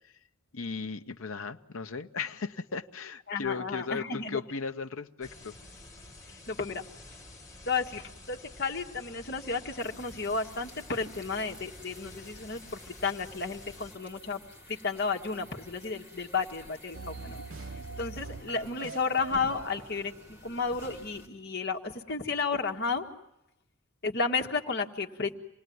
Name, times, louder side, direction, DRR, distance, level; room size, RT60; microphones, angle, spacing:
voice 1, 0.5-5.6, left 5 dB, 75° left, 1.0 m, -36 dB
voice 2, 3.3-4.4 6.5-6.8 7.7-14.4 14.7-17.4 17.7-23.1 24.0-25.3, left 4 dB, 50° left, 1.8 m, -32 dB
sound 1, 5.2-13.9, left 2 dB, 15° left, 5.5 m, -50 dB
sound 2, 9.8-21.3, left 1 dB, 5° right, 4.2 m, -52 dB
sound 3, 16.9-20.2, right 3 dB, 80° right, 1.4 m, -43 dB
27.5 x 19.0 x 9.4 m
head